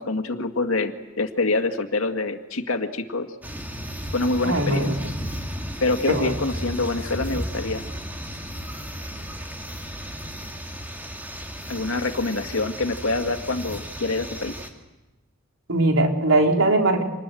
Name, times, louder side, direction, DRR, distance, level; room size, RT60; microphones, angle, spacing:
voice 1, 0.0-3.3 4.1-4.9 5.8-7.8 11.7-14.5, left 3 dB, 85° left, 6 dB, 2.0 m, -26 dB
sound 1, 3.4-14.7, equal, 10° right, 2.6 m, -34 dB
voice 2, 4.4-5.0 6.1-6.3 15.7-17.0, right 2 dB, 80° right, 2 dB, 3.8 m, -20 dB
27.0 x 20.5 x 9.2 m, 1.1 s
head